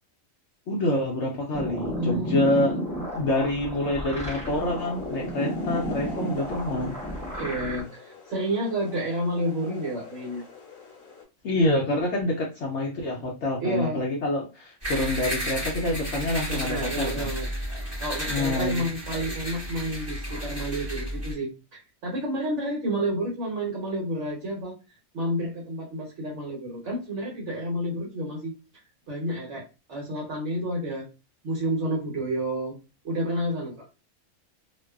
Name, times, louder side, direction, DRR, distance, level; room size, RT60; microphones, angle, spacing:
voice 1, 0.7-2.8 3.1-7.0 11.4-17.3 18.3-18.8, left 1 dB, 65° left, -1 dB, 0.8 m, -27 dB
sound 1, 1.5-7.8, equal, 10° left, 0.4 m, -32 dB
voice 2, 2.0-2.3 7.3-10.4 13.6-14.0 16.5-17.5 18.0-24.8 25.1-28.5 29.1-31.1 31.4-32.8 33.0-33.8, right 1 dB, 65° right, -2 dB, 1.1 m, -30 dB
sound 2, 4.2-11.2, left 3 dB, 80° left, 1.2 m, -45 dB
sound 3, 14.8-21.3, equal, 15° right, 0.9 m, -32 dB
2.6 x 2.2 x 2.2 m, 0.30 s
omnidirectional pair, 1.4 m